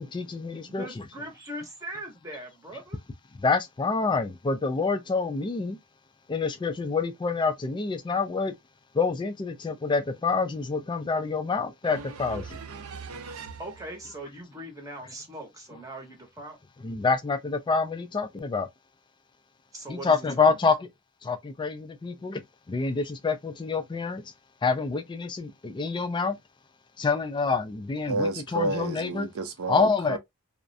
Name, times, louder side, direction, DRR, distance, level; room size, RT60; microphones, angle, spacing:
voice 1, 0.0-0.9 3.4-5.8 6.3-8.5 8.9-12.6 16.8-18.7 19.9-20.9 21.2-22.4 22.7-24.3 24.6-26.4 27.0-29.3 29.7-30.2, left 4 dB, 20° left, 0.3 m, -27 dB
voice 2, 0.6-3.0 13.6-16.6 19.7-20.6, right 1 dB, 15° right, 0.7 m, -40 dB
voice 3, 11.8-13.6 28.1-30.2, right 2 dB, 70° right, 0.6 m, -32 dB
2.3 x 2.1 x 2.6 m
head